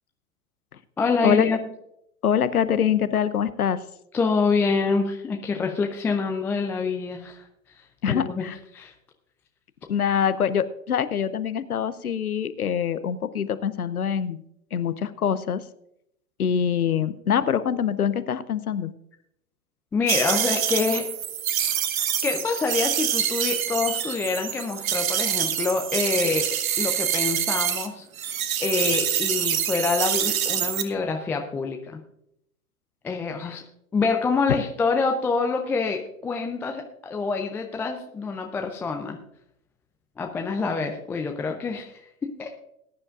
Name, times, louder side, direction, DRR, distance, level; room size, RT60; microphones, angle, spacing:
voice 1, 1.0-1.6 4.1-7.5 7.8-8.5 8.7-8.9 19.9-21.1 21.9-26.5 26.8-32.0 33.0-33.6 33.9-39.2 40.2-42.6, left 4 dB, 5° left, 3 dB, 0.3 m, -26 dB
voice 2, 2.2-3.8 8.0-8.5 9.9-14.4 14.7-15.6 16.4-18.9, left 8 dB, 90° left, 15 dB, 0.8 m, -24 dB
sound 1, 20.1-27.9 28.2-30.8, right 9 dB, 70° right, 1.3 m, -26 dB
20.0 x 9.7 x 2.5 m, 0.77 s
hypercardioid pair, 105°, 43 cm